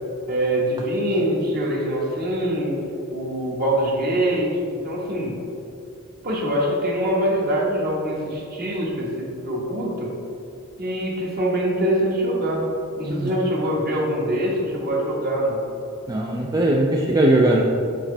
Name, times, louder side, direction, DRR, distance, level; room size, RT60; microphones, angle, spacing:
voice 1, 0.3-2.8 3.1-5.3 6.2-10.1 10.8-12.6 13.0-15.6, right 1 dB, 45° right, -3 dB, 1.3 m, -24 dB
voice 2, 16.1-17.6, right 1 dB, 15° right, -1 dB, 0.3 m, -19 dB
7.4 x 5.1 x 3.3 m, 2.6 s
head